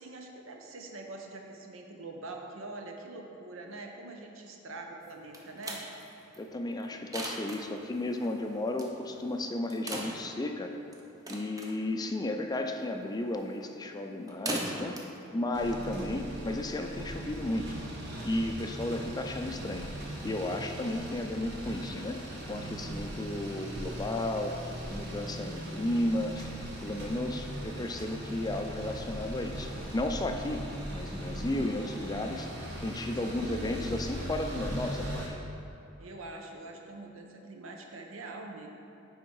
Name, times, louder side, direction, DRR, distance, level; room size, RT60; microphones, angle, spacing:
voice 1, 0.0-5.8 33.3-33.8 36.0-38.7, right 2 dB, 85° right, 2 dB, 0.8 m, -44 dB
sound 1, 5.0-16.5, right 1 dB, 15° right, 0.7 m, -42 dB
voice 2, 6.4-10.7 11.3-15.0 15.3-17.7 18.2-19.9 20.2-24.6 24.9-26.5 26.8-32.5 32.8-35.4, left 1 dB, 20° left, 4 dB, 0.4 m, -33 dB
sound 2, 15.5-35.3, right 1 dB, 60° right, 1.4 m, -39 dB
9.6 x 3.6 x 4.6 m, 2.9 s
head